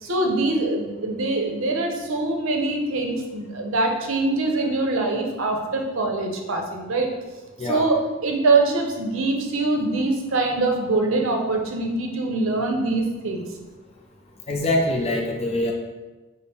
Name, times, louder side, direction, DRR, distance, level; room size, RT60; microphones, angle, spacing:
voice 1, 0.0-7.1 7.6-13.4, right 2 dB, 60° right, 2 dB, 0.6 m, -23 dB
voice 2, 14.5-15.7, left 1 dB, 25° left, -1 dB, 0.4 m, -24 dB
5.2 x 2.0 x 4.1 m, 1.2 s
head